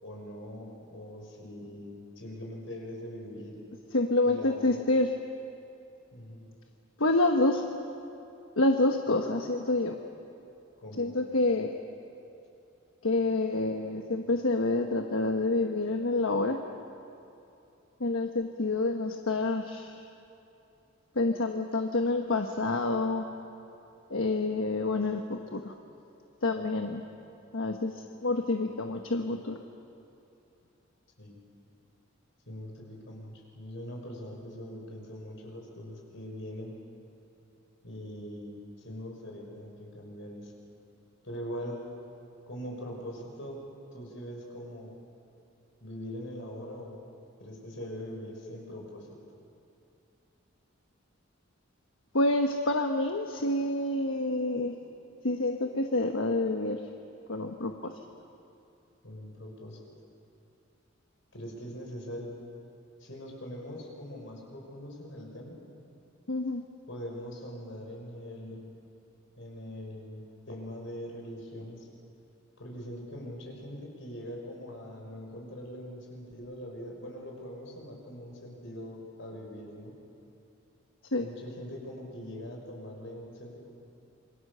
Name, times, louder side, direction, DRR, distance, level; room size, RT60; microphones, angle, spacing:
voice 1, 0.0-3.6 4.2-4.8 6.1-6.5 10.8-11.1 31.2-31.4 32.5-36.8 37.8-40.5 41.2-41.8 42.5-44.9 45.8-47.0 47.4-49.2 59.0-59.8 61.3-62.4 63.0-65.6 66.9-68.7 69.4-71.9 72.6-80.0 81.2-83.6, equal, 65° left, 0 dB, 5.9 m, -42 dB
voice 2, 3.9-5.1 7.0-7.6 8.6-10.0 11.0-11.7 13.0-16.6 18.0-19.9 21.2-23.2 24.1-25.7 26.4-27.0 27.5-27.9 28.2-29.6 52.1-54.7 55.2-56.8 57.3-57.9 66.3-66.6 81.1-81.3, left 2 dB, 85° left, 4 dB, 1.2 m, -27 dB
27.5 x 23.5 x 6.9 m, 2.8 s
head